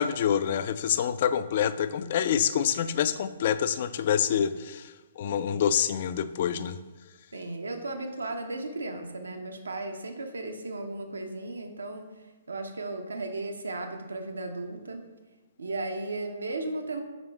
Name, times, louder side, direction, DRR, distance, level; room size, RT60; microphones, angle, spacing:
voice 1, 0.0-6.8, left 8 dB, 45° left, 13 dB, 0.3 m, -27 dB
voice 2, 7.3-12.1 12.5-15.0 15.6-17.0, right 2 dB, 75° right, 5 dB, 0.8 m, -35 dB
5.2 x 5.2 x 3.5 m, 1.2 s
figure-of-eight pair, 125°, 0 cm